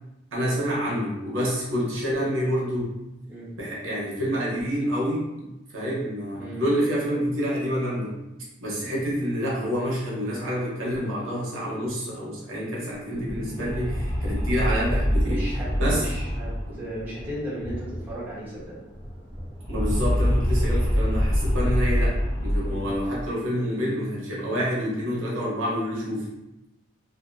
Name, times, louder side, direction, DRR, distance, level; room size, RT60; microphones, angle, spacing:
voice 1, 0.3-2.9 3.6-5.3 5.7-8.2 8.6-15.5 15.7-16.1 16.7-16.8 19.7-26.3, equal, 85° right, -5 dB, 0.9 m, -28 dB
sound 1, 13.1-18.3 18.6-18.7 18.9-23.3, equal, 20° left, 0.8 m, -25 dB
voice 2, 15.2-18.8 22.7-22.9, right 1 dB, 10° right, -11 dB, 1.0 m, -36 dB
2.7 x 2.5 x 2.5 m, 0.95 s
head